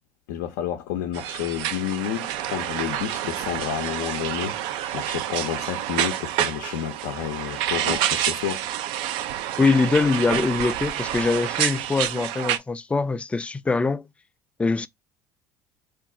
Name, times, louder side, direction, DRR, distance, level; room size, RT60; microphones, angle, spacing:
voice 1, 0.3-8.7, left 10 dB, 85° left, 0.5 m, -30 dB
sound 1, 1.1-12.6, right 12 dB, 70° right, 0.4 m, -28 dB
voice 2, 9.6-14.0 14.6-14.9, left 4 dB, 15° left, 0.3 m, -23 dB
2.5 x 2.2 x 3.6 m
supercardioid pair, 80°, 9 cm